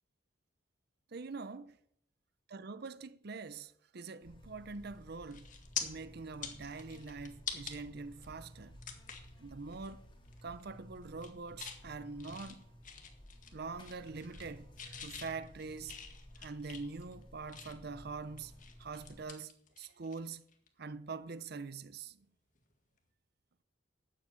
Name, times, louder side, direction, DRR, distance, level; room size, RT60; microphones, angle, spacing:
voice 1, 1.1-1.7 2.5-5.5 5.8-8.8 9.4-10.0 10.4-12.6 13.5-16.0 16.4-18.5 18.8-20.4 20.8-22.2, right 4 dB, 55° right, 0.6 m, -44 dB
Buzz, 4.2-19.2, equal, 25° left, 2.8 m, -55 dB
sound 1, 4.7-5.0 5.3-5.8 6.3-7.8 8.2-8.3 8.8-9.3 9.7-9.9 10.2-10.7 11.0-11.8 12.2-13.5 13.8-14.5 14.8-17.9 18.4-20.2 20.5-20.7 22.6-22.7, left 8 dB, 40° left, 1.8 m, -45 dB
12.5 x 8.1 x 8.6 m
head